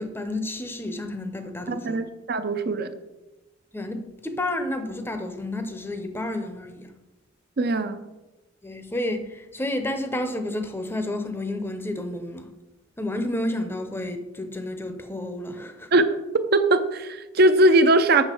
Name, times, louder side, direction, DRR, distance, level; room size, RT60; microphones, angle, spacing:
voice 1, 0.0-2.0 3.7-6.9 8.6-12.5 13.0-15.9, left 1 dB, 10° left, 0.7 m, -30 dB
voice 2, 1.7-2.9 7.6-8.0 15.9-16.0 16.3-18.2, right 2 dB, 50° right, 0.5 m, -20 dB
8.0 x 6.3 x 4.5 m
head